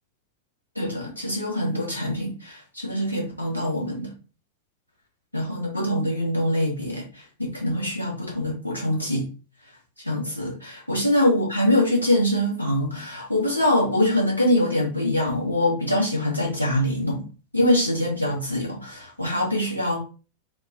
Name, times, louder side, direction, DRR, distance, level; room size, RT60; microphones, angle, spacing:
voice 1, 0.8-4.1 5.3-7.0 7.5-9.3 10.0-17.2 17.5-20.0, left 1 dB, 85° left, -2 dB, 0.9 m, -24 dB
3.4 x 2.1 x 2.7 m, 0.35 s
figure-of-eight pair, 90°, 0 cm